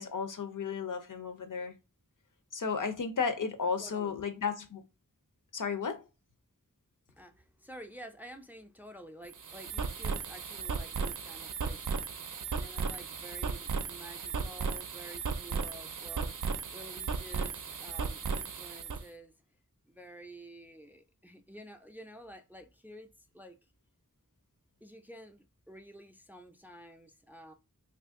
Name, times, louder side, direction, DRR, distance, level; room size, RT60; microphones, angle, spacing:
voice 1, 0.0-1.7 2.5-4.8 5.5-6.0, left 5 dB, 70° left, 0.6 m, -34 dB
voice 2, 3.8-4.2 7.2-12.0 12.6-19.4 19.9-23.6 24.8-27.5, right 1 dB, 5° right, 0.4 m, -50 dB
sound 1, 9.2-19.0, right 5 dB, 70° right, 0.5 m, -36 dB
2.8 x 2.5 x 3.5 m
wide cardioid pair, 45°, 32 cm